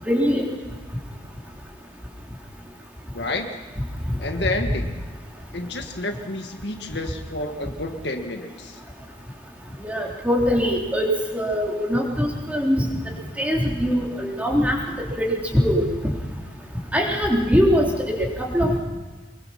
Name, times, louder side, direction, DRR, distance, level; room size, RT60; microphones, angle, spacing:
voice 1, 0.1-0.4 9.8-11.1 11.3-12.9 13.4-14.8 15.2-15.8 16.9-18.8, equal, 10° right, -2 dB, 3.5 m, -22 dB
voice 2, 3.1-3.6 4.2-4.9 5.5-8.8, left 2 dB, 65° left, 5 dB, 1.8 m, -30 dB
24.5 x 22.0 x 5.8 m, 1.3 s
head